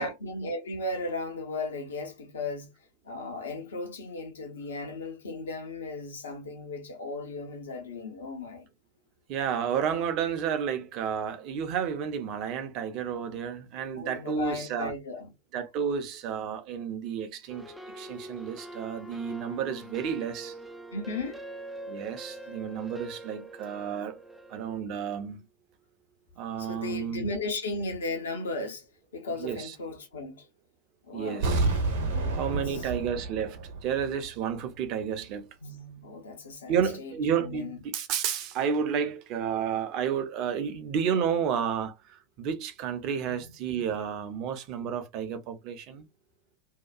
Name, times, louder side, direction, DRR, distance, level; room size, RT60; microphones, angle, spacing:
voice 1, 0.0-2.7 3.0-8.7 13.9-15.3 20.9-21.4 26.6-28.9 29.1-30.5 31.0-31.5 32.1-33.1 35.6-37.8 43.3-43.5, left 2 dB, 65° left, 0.9 m, -36 dB
voice 2, 9.3-14.9 15.5-20.5 21.9-24.2 24.5-25.4 26.4-27.3 29.4-29.7 31.1-31.7 32.3-35.5 36.7-46.0, right 7 dB, 40° right, 0.7 m, -31 dB
sound 1, 17.5-24.8, right 1 dB, 5° right, 0.4 m, -43 dB
sound 2, 31.4-34.3 34.6-34.7, right 3 dB, 60° right, 1.0 m, -29 dB
2.8 x 2.3 x 2.3 m
figure-of-eight pair, 90°, 0 cm